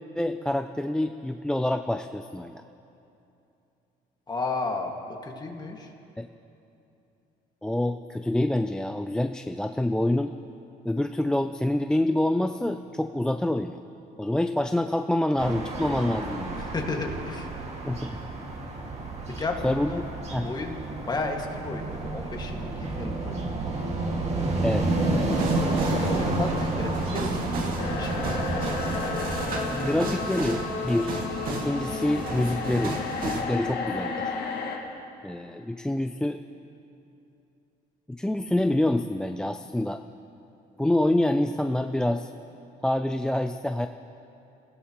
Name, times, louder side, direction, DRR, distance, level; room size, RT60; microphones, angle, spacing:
voice 1, 0.2-2.6 6.2-6.3 7.6-10.3 10.8-13.8 14.2-16.7 17.8-18.1 19.6-20.1 20.3-20.5 24.6-25.3 29.7-31.2 31.5-33.0 33.2-34.4 35.2-36.4 38.1-40.0 40.8-42.3 42.8-43.9, left 1 dB, 5° left, 8 dB, 0.3 m, -26 dB
voice 2, 4.3-5.9 16.5-17.5 19.4-20.0 20.4-20.8 21.1-23.4 25.3-28.4, left 3 dB, 25° left, 2 dB, 1.9 m, -33 dB
sound 1, 15.4-29.5, right 2 dB, 40° right, 2.1 m, -30 dB
sound 2, 25.3-33.4, right 3 dB, 55° right, 2.2 m, -34 dB
sound 3, 27.8-34.8, left 4 dB, 75° left, 1.8 m, -32 dB
27.0 x 17.0 x 3.1 m, 2.8 s
cardioid pair, 110°, 17 cm